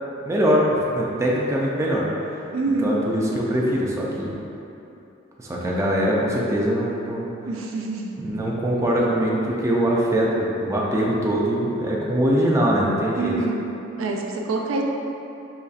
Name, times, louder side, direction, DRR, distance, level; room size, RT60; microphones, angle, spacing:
voice 1, 0.2-2.1 2.8-4.4 5.4-7.3 8.2-13.3, equal, 15° right, -4 dB, 0.3 m, -22 dB
voice 2, 2.5-3.0 7.4-8.1 13.2-13.7 14.0-14.8, right 3 dB, 90° right, 0 dB, 0.4 m, -26 dB
4.0 x 3.0 x 2.4 m, 2.9 s
head